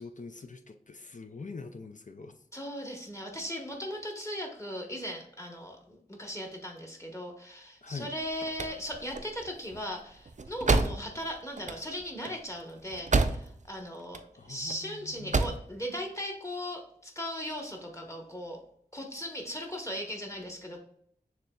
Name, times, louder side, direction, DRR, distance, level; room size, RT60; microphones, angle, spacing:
voice 1, 0.0-2.4 7.8-8.1 14.4-15.6, left 4 dB, 50° left, 7 dB, 0.4 m, -44 dB
voice 2, 2.5-18.6 18.9-20.8, equal, 20° left, 1 dB, 1.1 m, -38 dB
sound 1, 8.1-13.7 14.0-14.8 15.1-15.7, right 3 dB, 50° right, 0.4 m, -30 dB
6.6 x 3.2 x 2.3 m, 0.68 s
wide cardioid pair, 55°, 16 cm